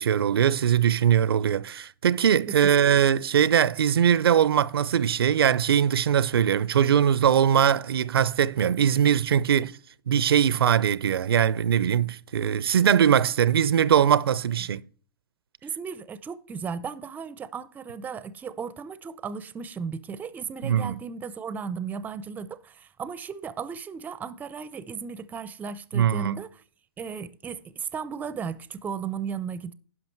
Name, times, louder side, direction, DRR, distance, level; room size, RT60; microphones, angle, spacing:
voice 1, 0.0-9.7 10.1-14.8 20.6-20.9 25.9-26.4, right 9 dB, 80° right, 0.5 m, -21 dB
voice 2, 15.6-26.6 27.0-29.7, right 6 dB, 15° right, 0.5 m, -35 dB
11.0 x 5.8 x 4.5 m
hypercardioid pair, 130°, 12 cm